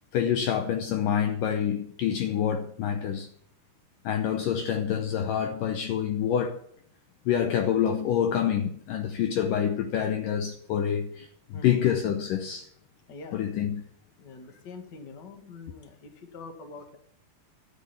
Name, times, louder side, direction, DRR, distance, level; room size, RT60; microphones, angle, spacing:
voice 1, 0.1-3.3 4.0-6.6 7.3-12.7 13.3-13.8, left 9 dB, 70° left, 2.3 m, -27 dB
voice 2, 13.1-13.4 14.2-17.0, left 4 dB, 35° left, 1.9 m, -44 dB
13.0 x 8.9 x 7.2 m
omnidirectional pair, 4.5 m